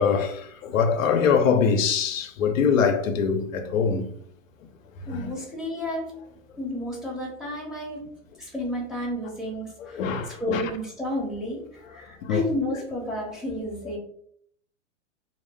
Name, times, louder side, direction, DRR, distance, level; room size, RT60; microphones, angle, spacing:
voice 1, 0.0-4.1 5.1-5.3 9.8-10.6 12.2-12.4, left 6 dB, 80° left, 0.5 m, -23 dB
voice 2, 5.1-6.1 6.6-8.0 8.4-10.0 10.4-11.6 11.9-14.0, left 1 dB, ahead, 0.7 m, -31 dB
2.1 x 2.0 x 3.4 m
hypercardioid pair, 120°, 39 cm